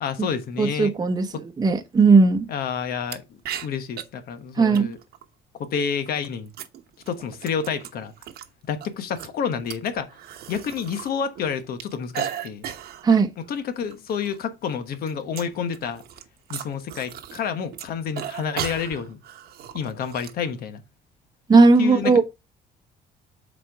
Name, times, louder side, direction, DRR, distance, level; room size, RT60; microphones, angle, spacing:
voice 1, 0.0-0.9 1.3-1.4 2.5-5.0 5.5-6.5 7.1-8.1 8.7-10.1 10.5-12.7 13.4-16.0 16.5-19.2 19.7-20.8 21.8-22.2, left 7 dB, 65° left, 1.1 m, -29 dB
voice 2, 0.6-1.3 1.6-2.5 4.6-4.9 13.0-13.3 21.5-22.2, right 4 dB, 25° right, 0.9 m, -16 dB
sound 1, 3.1-3.2 3.4-4.0 4.7-5.2 6.0-8.5 8.8-11.1 11.3-13.1 13.5-13.6 13.9-14.4 14.6-17.5 17.7-20.3, right 10 dB, 65° right, 1.0 m, -36 dB
7.4 x 4.4 x 3.5 m
cardioid pair, 110°, 17 cm